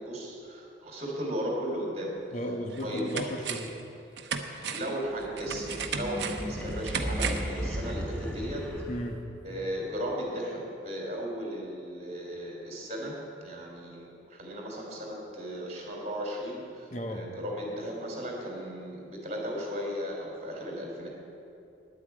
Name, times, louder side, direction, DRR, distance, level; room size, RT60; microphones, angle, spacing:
voice 1, 0.0-2.2 2.8-3.1 4.7-8.7 9.4-21.1, equal, 40° right, -1 dB, 3.1 m, -36 dB
sound 1, 2.2-2.3 2.7-3.8 4.2-7.6 7.9-8.0, right 6 dB, 70° right, 0.9 m, -35 dB
voice 2, 2.3-3.7 8.9-9.2 16.9-17.2, equal, 40° left, 4 dB, 1.1 m, -34 dB
sound 2, 5.2-9.4, equal, 5° left, 1.1 m, -35 dB
10.0 x 8.6 x 8.5 m, 2.6 s
head